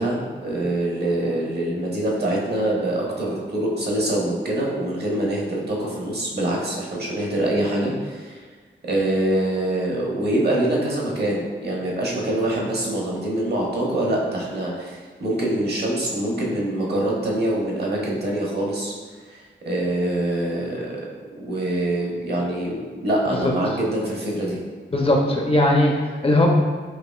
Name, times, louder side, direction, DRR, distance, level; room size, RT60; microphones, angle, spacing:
voice 1, 0.0-8.4 8.8-18.9 19.3-21.0 21.4-24.6, right 1 dB, 55° right, -3 dB, 0.9 m, -24 dB
voice 2, 24.9-26.5, left 1 dB, 30° left, 0 dB, 0.5 m, -19 dB
4.8 x 2.7 x 2.3 m, 1.5 s
wide cardioid pair, 80°, 20 cm